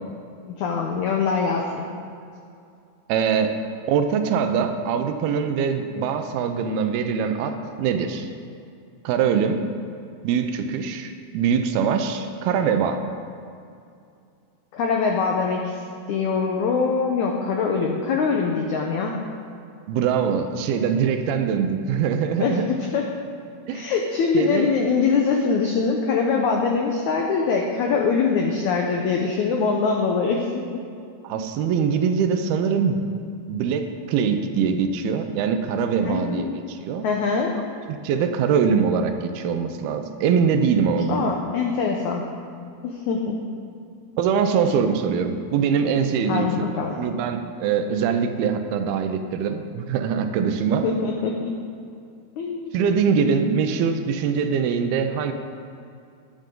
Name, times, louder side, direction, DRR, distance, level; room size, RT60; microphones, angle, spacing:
voice 1, 0.5-1.8 14.7-15.8 16.1-19.2 22.4-22.6 22.9-23.1 23.7-30.8 36.0-36.5 37.0-37.5 41.1-42.3 42.8-43.4 46.3-47.1 50.8-51.5 52.4-52.7, left 5 dB, 80° left, 1 dB, 1.7 m, -23 dB
voice 2, 3.1-3.5 3.9-8.3 9.0-9.7 10.2-13.0 19.9-22.7 23.7-23.8 24.3-24.7 31.2-33.0 33.5-37.1 37.9-41.3 44.2-50.9 52.7-55.3, right 6 dB, 80° right, 7 dB, 2.6 m, -23 dB
20.0 x 8.9 x 3.8 m, 2.4 s
omnidirectional pair, 4.6 m